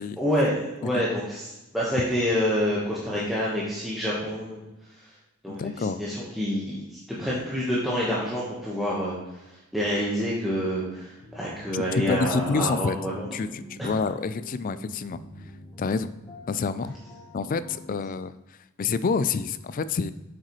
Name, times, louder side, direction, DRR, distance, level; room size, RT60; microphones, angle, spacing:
voice 1, 0.2-4.6 5.4-9.1 9.7-13.3 13.8-13.9, equal, ahead, -7 dB, 1.2 m, -27 dB
voice 2, 5.5-6.0 11.7-13.0 13.3-15.2 15.8-16.1 16.5-17.0 17.3-18.3 18.8-20.1, left 4 dB, 40° left, 14 dB, 0.3 m, -28 dB
sound 1, 11.2-18.0, left 1 dB, 20° left, 1.0 m, -46 dB
8.0 x 6.4 x 3.1 m, 0.99 s
head